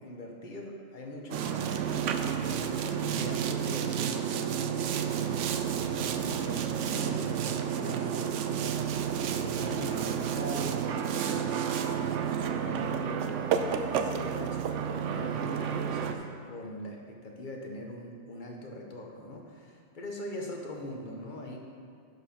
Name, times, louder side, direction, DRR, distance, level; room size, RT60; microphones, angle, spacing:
voice 1, 0.0-9.0 9.3-21.6, left 1 dB, 45° left, 0 dB, 1.2 m, -42 dB
Boat Water vehicle, 1.3-16.1, right 8 dB, 90° right, 0.9 m, -31 dB
11.0 x 5.0 x 5.2 m, 2.2 s
omnidirectional pair, 1.2 m